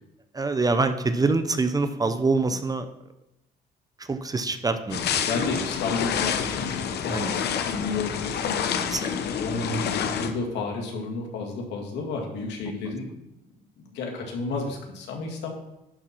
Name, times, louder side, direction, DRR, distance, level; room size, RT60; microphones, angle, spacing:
voice 1, 0.3-2.9 4.0-5.3 5.5-5.6 7.1-7.3 8.8-9.2, right 3 dB, 20° right, 10 dB, 0.7 m, -25 dB
sound 1, 4.9-10.3, left 8 dB, 70° left, 0.8 m, -28 dB
voice 2, 5.3-8.6 9.3-13.1 13.8-15.5, left 3 dB, 85° left, 1 dB, 1.9 m, -31 dB
11.0 x 4.2 x 5.9 m, 0.91 s
cardioid pair, 95°, 18 cm